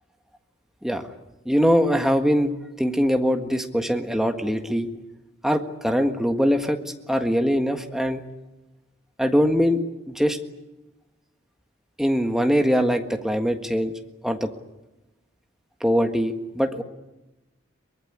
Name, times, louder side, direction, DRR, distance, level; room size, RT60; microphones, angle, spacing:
voice 1, 1.4-2.5 2.8-4.9 5.4-6.8 7.1-8.2 9.2-10.4 12.0-13.9 14.2-14.5 15.8-16.8, equal, ahead, 5 dB, 1.6 m, -22 dB
23.5 x 20.5 x 9.8 m, 1.0 s
head